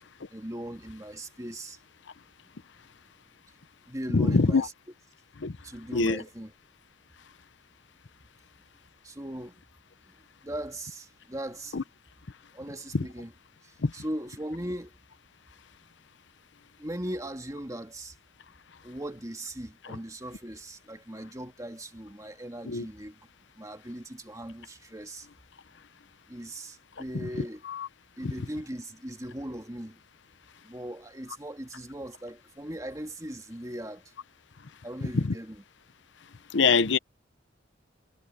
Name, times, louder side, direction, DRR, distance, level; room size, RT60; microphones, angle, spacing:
voice 1, 0.3-1.8 3.9-4.7 5.6-6.5 9.0-9.6 10.0-10.1 10.4-11.8 12.5-13.3 13.6-15.0 16.8-18.2 18.8-23.2 23.6-25.3 26.3-27.6 28.2-30.0 30.6-34.1 34.8-35.6, right 1 dB, 20° right, 2.3 m, -39 dB
voice 2, 4.1-4.7 5.4-5.6 5.9-6.2 11.7-11.8 12.9-13.1 13.8-13.9 19.9-20.0 22.7-22.9 27.7-27.9 28.2-28.3 35.1-35.3 36.5-37.0, left 4 dB, 70° left, 0.8 m, -24 dB
head